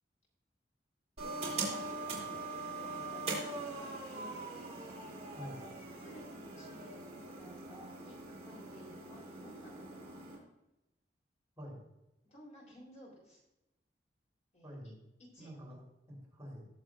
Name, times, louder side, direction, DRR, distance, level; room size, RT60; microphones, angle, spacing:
voice 1, 1.2-4.5 6.0-10.2 12.2-13.4 14.5-14.9 15.3-15.5, equal, 40° left, -3 dB, 3.7 m, -55 dB
sound 1, 1.2-10.4, right 3 dB, 35° right, 3.7 m, -42 dB
voice 2, 14.6-14.9 15.4-16.7, equal, 20° right, -4 dB, 3.8 m, -47 dB
19.0 x 7.6 x 2.5 m, 0.92 s
head